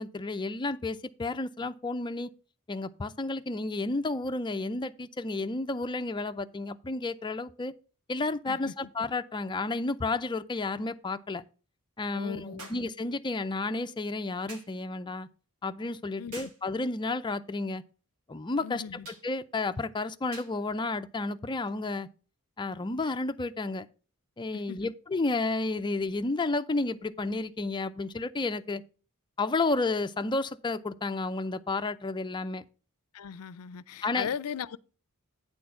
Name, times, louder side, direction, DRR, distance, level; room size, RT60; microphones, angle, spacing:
voice 1, 0.0-2.3 2.7-7.7 8.1-11.4 12.0-15.3 15.6-17.8 18.3-18.8 19.2-22.1 22.6-23.9 24.4-28.8 29.4-32.6 34.0-34.3, left 3 dB, 20° left, 0.4 m, -31 dB
voice 2, 12.1-12.7 16.2-16.5 18.6-19.1 24.7-24.9 33.1-34.8, left 7 dB, 75° left, 0.4 m, -38 dB
sound 1, 12.6-12.9 14.5-14.8 16.3-16.7 19.0-19.3 20.3-20.6 21.7-21.8, right 3 dB, 70° right, 2.3 m, -47 dB
9.2 x 4.4 x 5.7 m
head